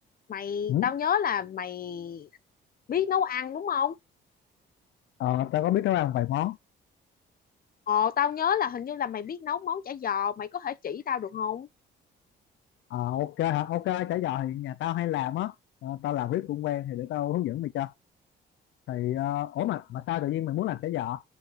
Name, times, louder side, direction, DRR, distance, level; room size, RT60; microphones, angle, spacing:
voice 1, 0.3-2.3 2.9-4.0 7.9-11.7, left 8 dB, 45° left, 0.8 m, -29 dB
voice 2, 5.2-6.6 12.9-15.5 15.8-17.9 18.9-21.2, left 13 dB, 70° left, 0.5 m, -29 dB
6.6 x 4.2 x 5.7 m
cardioid pair, 90°, 20 cm